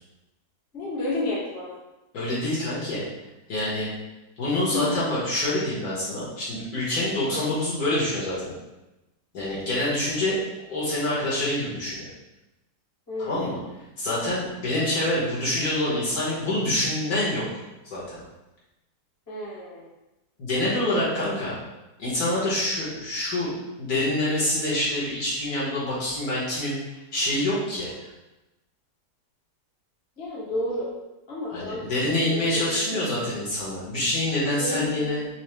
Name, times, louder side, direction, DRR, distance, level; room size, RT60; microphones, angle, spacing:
voice 1, 0.7-1.8 4.7-4.9 7.3-7.4 13.1-13.3 19.3-19.8 30.2-30.9 31.3-33.0 34.6-35.3, left 2 dB, 35° left, -8 dB, 1.3 m, -31 dB
voice 2, 2.1-3.0 3.5-3.9 4.4-8.5 9.3-10.4 10.7-12.1 13.2-13.6 14.0-17.4 17.9-18.2 20.4-21.6 22.0-23.5 23.8-26.8 27.1-27.9 31.5-35.2, left 1 dB, 60° left, -8 dB, 1.5 m, -26 dB
6.0 x 2.0 x 3.3 m, 1.0 s
omnidirectional pair, 1.9 m